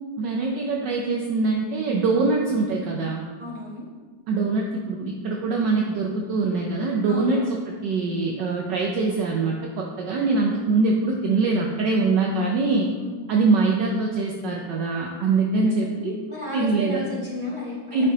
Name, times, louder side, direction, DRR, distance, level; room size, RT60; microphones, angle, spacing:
voice 1, 0.2-3.2 4.3-12.9 13.3-16.2 16.5-17.0 17.9-18.1, right 3 dB, 70° right, 0 dB, 1.2 m, -23 dB
voice 2, 3.4-3.9 7.1-7.5 12.9-13.1 15.5-18.0, left 1 dB, 15° right, -8 dB, 1.8 m, -33 dB
8.9 x 5.4 x 2.8 m, 1.5 s
omnidirectional pair, 2.2 m